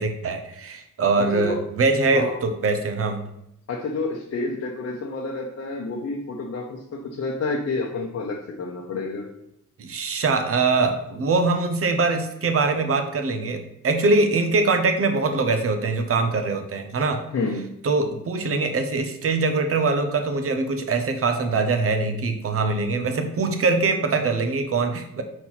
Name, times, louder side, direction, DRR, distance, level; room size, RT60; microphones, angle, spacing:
voice 1, 0.0-3.2 9.8-17.2 17.8-25.2, right 3 dB, 45° right, 7 dB, 0.9 m, -23 dB
voice 2, 1.2-1.6 2.1-2.3 3.7-9.3 17.3-17.7, left 3 dB, 45° left, -1 dB, 0.8 m, -29 dB
4.4 x 4.3 x 5.8 m, 0.80 s
cardioid pair, 125°, 32 cm